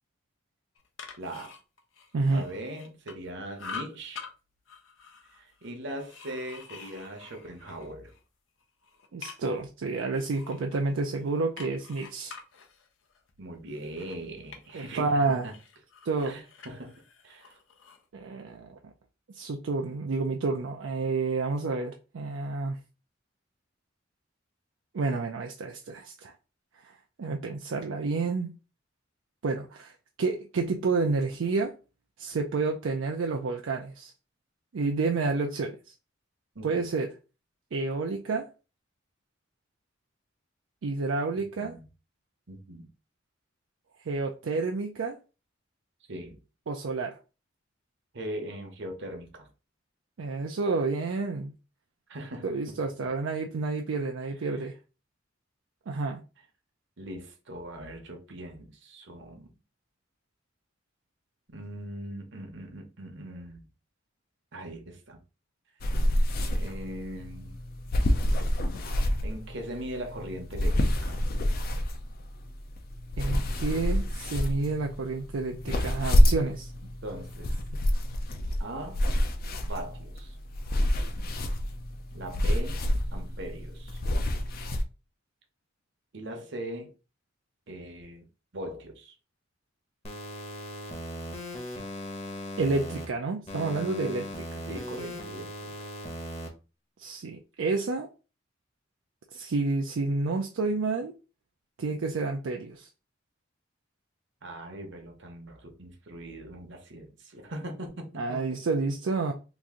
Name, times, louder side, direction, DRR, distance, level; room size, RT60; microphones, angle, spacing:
sound 1, 0.8-3.3 3.6-4.3 4.7-8.2 8.6-9.7 10.1-15.1 15.4-18.0, left 6 dB, 90° left, 0.7 m, -46 dB
voice 1, 1.2-1.5 2.3-4.3 5.3-8.1 13.4-15.5 16.2-16.9 17.2-17.6 36.5-36.9 41.6-41.9 42.5-42.9 46.1-46.4 48.1-49.5 52.1-52.4 54.4-54.6 57.0-59.5 61.5-63.7 64.5-65.2 65.8-66.1 66.5-67.6 69.2-71.3 76.8-77.5 78.6-79.0 79.6-80.4 82.1-82.8 83.1-84.0 86.1-86.9 87.7-88.2 88.5-89.1 94.7-95.7 104.4-108.4, right 1 dB, 65° right, 0.9 m, -40 dB
voice 2, 2.1-2.5 9.1-12.4 14.7-15.5 16.0-16.3 18.1-18.8 19.3-22.8 24.9-26.3 26.8-26.9 27.2-28.5 29.4-31.7 32.2-34.1 34.7-35.9 36.6-37.1 37.7-38.5 40.8-41.7 44.0-45.2 46.7-47.2 50.2-51.5 52.4-54.7 55.9-56.2 73.2-76.7 92.6-94.7 97.0-98.1 99.3-101.1 101.8-102.9 108.2-109.3, right 3 dB, 80° right, 0.4 m, -29 dB
sound 2, 65.8-84.8, equal, 50° left, 0.5 m, -28 dB
sound 3, 90.0-93.0 93.5-96.5, equal, 30° left, 0.9 m, -38 dB
3.0 x 2.5 x 3.6 m
head